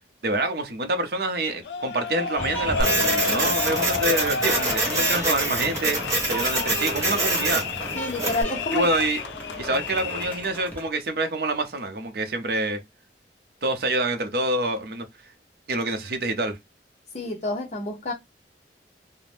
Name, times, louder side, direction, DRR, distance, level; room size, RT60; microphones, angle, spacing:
voice 1, 0.2-6.0 6.2-7.9 8.7-9.2 9.6-12.8 13.6-15.1 15.7-16.6, right 2 dB, 60° right, 0.6 m, -26 dB
sound 1, 1.6-10.6, left 6 dB, 80° left, 0.3 m, -31 dB
sound 2, 2.3-10.9, right 1 dB, 10° left, 0.7 m, -35 dB
Printer, 2.8-8.4, right 2 dB, 20° right, 1.1 m, -26 dB
voice 2, 7.9-8.9 17.1-18.1, left 2 dB, 40° left, 0.6 m, -28 dB
2.5 x 2.0 x 3.2 m
head